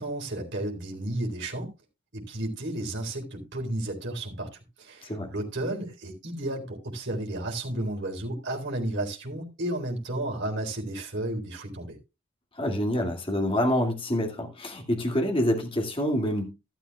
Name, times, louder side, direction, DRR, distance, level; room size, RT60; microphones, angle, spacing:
voice 1, 0.0-1.7 2.1-4.5 4.8-12.0, right 1 dB, 55° right, 3.9 m, -32 dB
voice 2, 12.6-16.4, equal, 25° left, 2.2 m, -26 dB
13.0 x 12.5 x 2.3 m
head